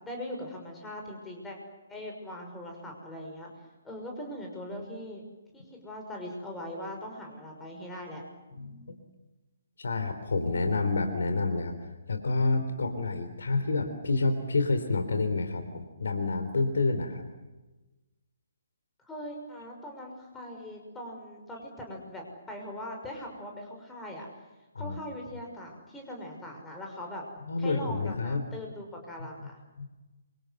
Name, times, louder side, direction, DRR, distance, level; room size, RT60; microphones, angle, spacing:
voice 1, 0.0-1.6 1.9-3.5 3.8-5.2 5.5-8.2 19.0-24.3 24.8-27.2 27.6-29.6, left 1 dB, 5° left, 1 dB, 6.2 m, -41 dB
voice 2, 8.5-9.0 9.8-11.7 12.1-17.2 24.7-25.0 27.4-28.5 29.8-29.9, left 3 dB, 55° left, 7 dB, 3.8 m, -28 dB
28.0 x 25.0 x 8.0 m, 1.1 s
figure-of-eight pair, 135°, 0 cm